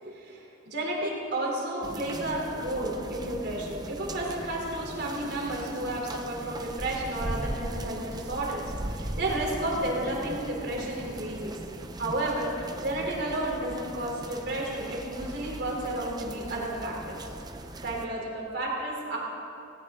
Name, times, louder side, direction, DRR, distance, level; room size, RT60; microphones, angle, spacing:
voice 1, 0.0-8.6 8.9-11.5 12.0-17.3 17.8-19.2, right 1 dB, 55° right, -2 dB, 3.7 m, -32 dB
sound 1, 1.8-18.1, right 1 dB, 20° right, 0.7 m, -39 dB
18.5 x 17.5 x 3.8 m, 2.7 s
head